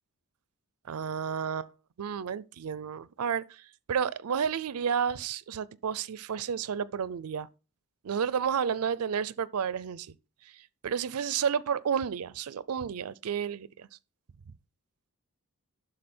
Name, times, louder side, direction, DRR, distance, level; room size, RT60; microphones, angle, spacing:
voice 1, 0.9-1.7 2.0-3.6 3.9-7.5 8.0-10.1 10.8-13.9, right 7 dB, 80° right, 0.5 m, -31 dB
11.5 x 4.1 x 4.3 m
head